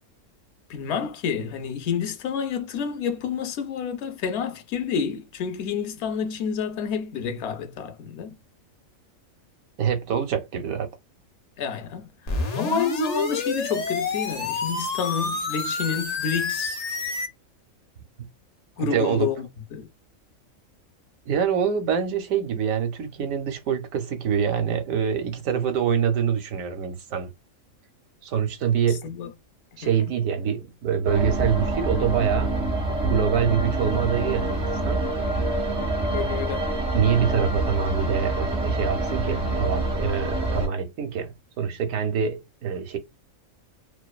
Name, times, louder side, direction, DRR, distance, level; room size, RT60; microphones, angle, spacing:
voice 1, 0.7-8.3 11.6-16.8 18.8-19.5 19.7-19.9 29.0-29.3 36.1-36.7, left 6 dB, 65° left, 0.8 m, -29 dB
voice 2, 9.8-10.9 18.9-19.3 21.3-27.3 28.2-29.0 29.8-32.5 33.0-35.0 36.9-43.0, right 7 dB, 90° right, 1.1 m, -25 dB
sound 1, 12.3-17.3, left 4 dB, 90° left, 0.3 m, -28 dB
sound 2, 31.0-40.7, right 2 dB, 45° right, 0.5 m, -26 dB
2.5 x 2.3 x 2.2 m
omnidirectional pair, 1.4 m